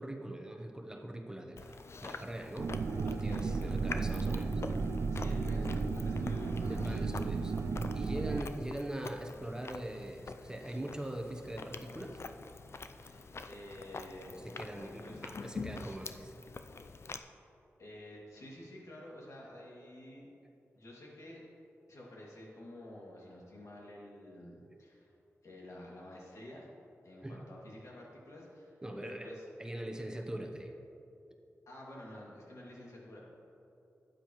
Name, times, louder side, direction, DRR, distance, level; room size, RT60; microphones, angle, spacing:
voice 1, 0.0-2.8 3.0-4.6 6.7-7.5 7.9-12.2 14.4-16.3 27.2-27.4 28.8-29.3 29.6-30.7, right 1 dB, 15° right, 3 dB, 0.9 m, -42 dB
Chewing mastication, 1.6-17.2, left 4 dB, 55° left, 0.4 m, -46 dB
sound 1, 2.6-8.4, right 4 dB, 65° right, 0.4 m, -34 dB
voice 2, 3.2-3.6 5.1-7.1 13.0-14.4 14.8-15.2 17.8-20.3 20.8-21.4 21.9-25.1 25.4-26.7 27.0-29.4 31.7-33.2, left 1 dB, 75° left, -4 dB, 2.3 m, -50 dB
12.5 x 9.0 x 3.1 m, 2.9 s
cardioid pair, 65°, 5 cm